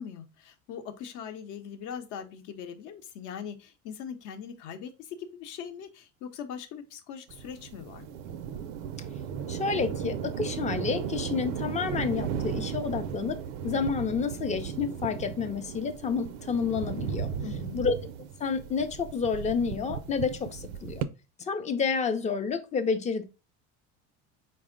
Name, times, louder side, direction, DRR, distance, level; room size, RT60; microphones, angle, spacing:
voice 1, 0.0-8.1 17.4-17.8, left 7 dB, 55° left, 0.7 m, -41 dB
sound 1, 7.3-21.0, right 8 dB, 75° right, 0.5 m, -36 dB
voice 2, 9.5-13.4 13.6-17.3 17.7-18.0 18.4-21.1 21.4-23.2, left 5 dB, 20° left, 0.4 m, -29 dB
4.3 x 2.0 x 3.6 m
supercardioid pair, 105°, 36 cm